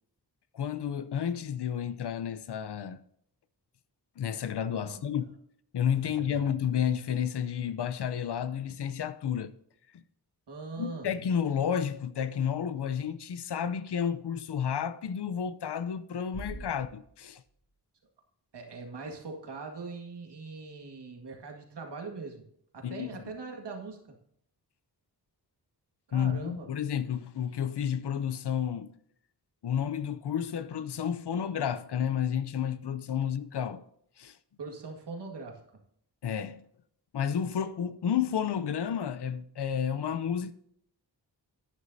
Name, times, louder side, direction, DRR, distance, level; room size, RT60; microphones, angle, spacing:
voice 1, 0.5-3.0 4.2-5.3 5.7-9.5 10.8-17.4 22.8-23.1 26.1-28.9 29.6-33.8 34.2-34.4 36.2-36.6 37.1-40.5, left 8 dB, 80° left, 0.7 m, -31 dB
voice 2, 10.5-11.1 16.5-16.7 18.5-22.4 22.7-24.2 26.1-26.7 34.6-35.6, right 4 dB, 85° right, 2.0 m, -41 dB
Bass drum, 16.3-18.0, right 1 dB, 40° left, 2.7 m, -46 dB
11.5 x 9.5 x 2.7 m
wide cardioid pair, 110°, 40 cm